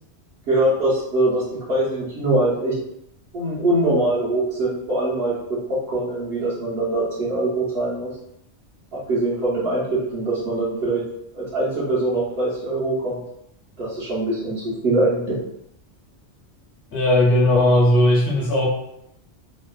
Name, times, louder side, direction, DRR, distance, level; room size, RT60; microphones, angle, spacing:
voice 1, 0.5-2.7 3.3-8.1 8.9-11.0 11.3-13.2 13.8-15.4, right 2 dB, 65° right, -8 dB, 1.0 m, -23 dB
voice 2, 16.9-18.7, left 1 dB, 55° left, -3 dB, 0.9 m, -17 dB
2.8 x 2.0 x 2.2 m, 0.78 s
omnidirectional pair, 1.2 m